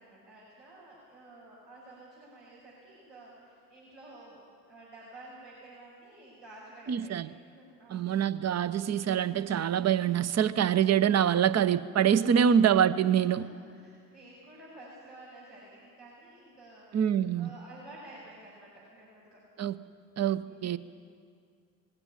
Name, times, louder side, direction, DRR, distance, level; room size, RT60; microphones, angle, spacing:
voice 1, 0.0-4.4 4.7-7.2 7.4-8.1 12.2-12.5 13.3-19.4 20.4-20.8, right 2 dB, 80° right, -7 dB, 6.0 m, -51 dB
voice 2, 6.9-7.3 7.9-13.5 16.9-17.5 19.6-19.8 20.2-20.8, right 8 dB, 35° right, 15 dB, 0.9 m, -25 dB
20.0 x 17.0 x 9.9 m, 2.2 s
hypercardioid pair, 55°, 47 cm